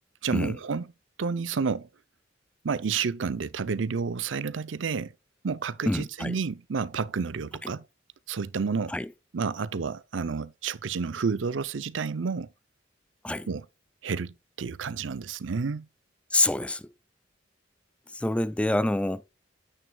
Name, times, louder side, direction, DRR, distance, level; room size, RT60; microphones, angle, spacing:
voice 1, 0.2-0.9 1.2-1.9 2.6-5.1 5.4-7.8 8.3-8.9 9.3-12.5 13.5-13.7 14.0-15.9, right 5 dB, 80° right, 0.5 m, -30 dB
voice 2, 5.9-6.4 8.9-9.1 13.2-13.5 16.3-16.9 18.1-19.2, left 1 dB, 5° left, 0.3 m, -26 dB
9.3 x 9.3 x 2.3 m
head